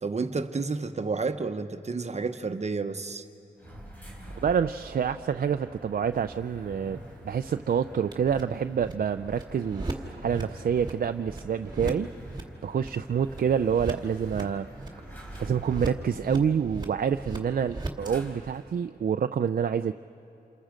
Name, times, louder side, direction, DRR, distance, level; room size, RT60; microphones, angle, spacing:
voice 1, 0.0-3.2, right 4 dB, 40° right, 8 dB, 1.1 m, -30 dB
sound 1, 3.6-18.8, equal, 10° left, 4.2 m, -47 dB
voice 2, 4.4-12.1 12.6-14.7 15.4-19.9, right 7 dB, 60° right, 9 dB, 0.5 m, -27 dB
Table Slap Reverse, 6.1-18.1, right 2 dB, 25° right, 2.4 m, -39 dB
28.5 x 28.0 x 5.1 m, 2.8 s
wide cardioid pair, 85°, 17 cm